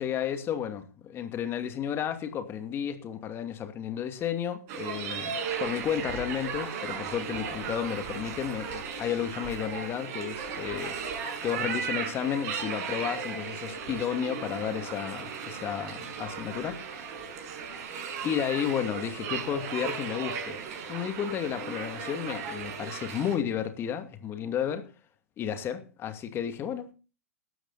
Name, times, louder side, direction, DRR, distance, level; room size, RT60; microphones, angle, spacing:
voice 1, 0.0-5.3 5.6-11.0 11.4-17.0 18.2-20.6 20.9-24.9 25.4-26.9, left 9 dB, 30° left, 2.5 m, -32 dB
sound 1, 4.7-23.4, right 6 dB, 45° right, 6.9 m, -36 dB
16.0 x 12.5 x 4.2 m
figure-of-eight pair, 105°, 8 cm